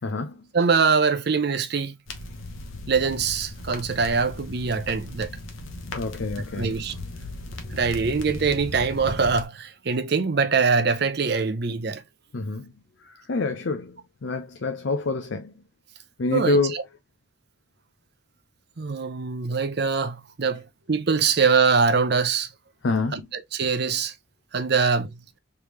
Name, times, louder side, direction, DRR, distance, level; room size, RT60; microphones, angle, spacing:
voice 1, 0.0-0.3 6.0-6.8 12.3-12.7 13.1-13.9 14.2-15.5 16.2-16.8 22.8-23.3, left 3 dB, 65° left, 0.5 m, -26 dB
voice 2, 0.5-1.9 2.9-5.3 6.6-6.9 7.7-12.0 16.3-16.8 18.8-20.6 20.9-22.5 23.1-24.1 24.5-25.2, right 5 dB, 55° right, 0.6 m, -23 dB
sound 1, 2.1-9.5, left 2 dB, 85° left, 1.0 m, -37 dB
3.4 x 3.4 x 3.0 m
head